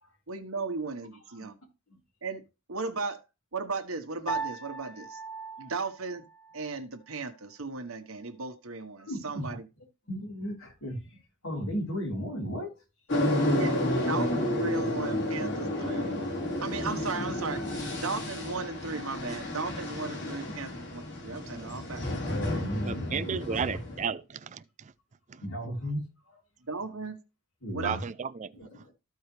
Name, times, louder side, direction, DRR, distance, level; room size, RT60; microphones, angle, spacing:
voice 1, 0.3-1.6 2.2-2.4 2.7-3.2 3.5-5.2 5.6-6.2 6.5-9.7 13.5-16.4 16.6-22.6 26.7-27.2 27.7-28.0, right 4 dB, 85° right, 1.3 m, -36 dB
Piano, 4.3-6.8, right 4 dB, 20° left, 1.6 m, -38 dB
voice 2, 9.1-9.5 10.1-11.2 11.4-12.7 22.3-23.8 25.4-26.4 27.6-28.0 28.5-28.9, equal, 85° left, 4.2 m, -35 dB
sound 1, 13.1-24.0, left 1 dB, 60° left, 3.7 m, -31 dB
voice 3, 22.9-24.6 25.3-25.4 27.8-28.8, right 6 dB, 35° right, 0.4 m, -33 dB
14.0 x 4.7 x 3.3 m
head